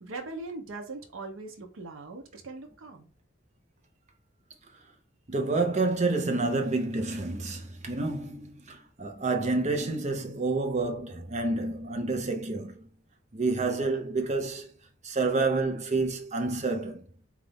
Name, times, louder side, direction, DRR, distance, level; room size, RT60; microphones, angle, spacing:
voice 1, 0.0-3.1, right 3 dB, 85° right, 0.7 m, -40 dB
voice 2, 5.3-12.9 13.3-14.7 15.0-17.1, right 3 dB, 35° right, 0.7 m, -29 dB
3.9 x 2.5 x 3.4 m
head